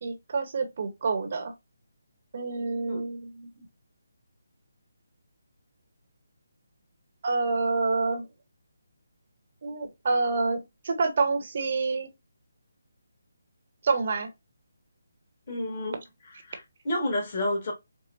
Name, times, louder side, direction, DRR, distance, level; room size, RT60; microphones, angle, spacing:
voice 1, 0.0-1.5 2.3-3.7 7.2-8.2 9.6-12.1 13.8-14.3, right 4 dB, 45° right, 1.0 m, -27 dB
voice 2, 15.5-16.0 16.3-17.7, left 1 dB, 40° left, 1.7 m, -30 dB
4.8 x 2.4 x 2.6 m
figure-of-eight pair, 155°, 0 cm